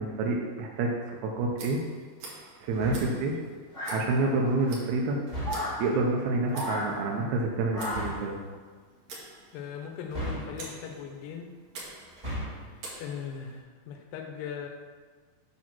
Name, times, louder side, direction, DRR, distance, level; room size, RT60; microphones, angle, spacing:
voice 1, 0.0-1.8 2.6-3.3 3.9-5.2 5.8-8.3, right 3 dB, 80° right, 0 dB, 1.8 m, -28 dB
Tick, 1.5-13.6, right 2 dB, 55° right, 2.6 m, -48 dB
sound 1, 2.7-3.3 5.3-5.9 7.8-8.4 10.1-10.9 12.1-12.8, equal, 20° right, 1.1 m, -36 dB
sound 2, 3.7-4.5 5.4-5.8 6.5-6.9 7.7-8.2, left 1 dB, 15° left, 1.6 m, -34 dB
voice 2, 9.5-11.5 13.0-14.7, left 7 dB, 75° left, 3 dB, 2.5 m, -39 dB
9.0 x 4.1 x 6.0 m, 1.5 s
omnidirectional pair, 4.3 m